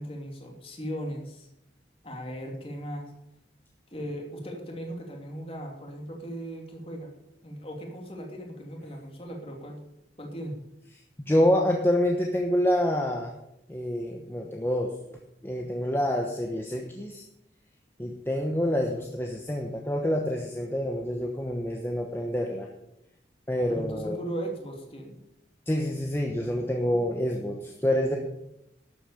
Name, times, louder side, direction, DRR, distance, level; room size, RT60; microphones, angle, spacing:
voice 1, 0.0-1.5 2.0-3.1 3.9-7.1 7.4-9.8 10.2-10.6 23.7-25.2, right 1 dB, 30° left, 1 dB, 2.7 m, -37 dB
voice 2, 11.2-13.3 13.7-14.9 15.4-17.2 18.0-22.7 23.5-24.2 25.7-28.2, equal, 15° left, 1 dB, 1.1 m, -27 dB
12.0 x 8.3 x 6.9 m, 0.82 s
head